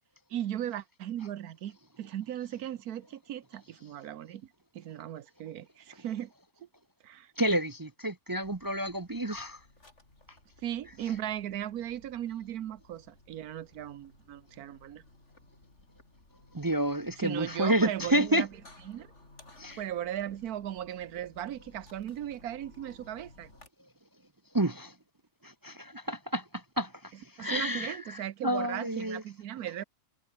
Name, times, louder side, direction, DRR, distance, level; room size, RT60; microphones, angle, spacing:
voice 1, 0.3-4.5 4.7-6.3 7.0-7.3 10.6-15.0 17.2-18.6 18.8-19.1 19.8-23.5 27.1-29.8, right 11 dB, 85° right, 1.4 m, -37 dB
voice 2, 7.4-9.6 16.5-18.5 19.6-19.8 24.5-24.9 25.4-26.4 26.8-26.9 27.4-28.0 28.4-29.2, right 1 dB, 25° right, 0.4 m, -29 dB
sound 1, 8.4-23.7, left 2 dB, 50° left, 5.5 m, -58 dB
omnidirectional pair, 1.6 m